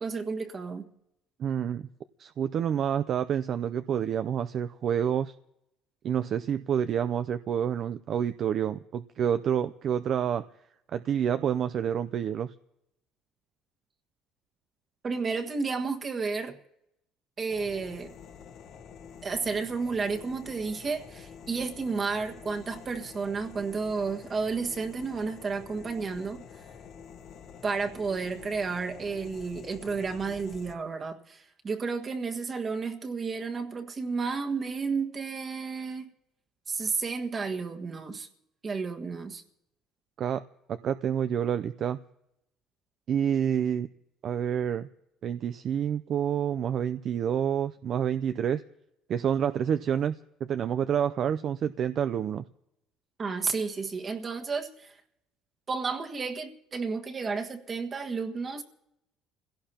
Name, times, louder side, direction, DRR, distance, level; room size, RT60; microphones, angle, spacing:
voice 1, 0.0-0.9 15.0-16.6 17.4-18.1 19.2-26.4 27.6-36.1 36.7-38.3 38.6-39.4 53.2-55.0 55.7-58.6, right 4 dB, 30° right, 1.6 m, -32 dB
voice 2, 1.4-1.9 2.2-5.3 6.0-10.4 10.9-12.5 40.2-40.4 40.7-42.0 43.1-43.9 44.2-44.9 45.2-48.6 49.1-52.4, right 8 dB, 50° right, 0.5 m, -28 dB
sound 1, 17.5-30.7, left 7 dB, 55° left, 1.5 m, -48 dB
28.0 x 17.0 x 2.9 m
cardioid pair, 115°, 0 cm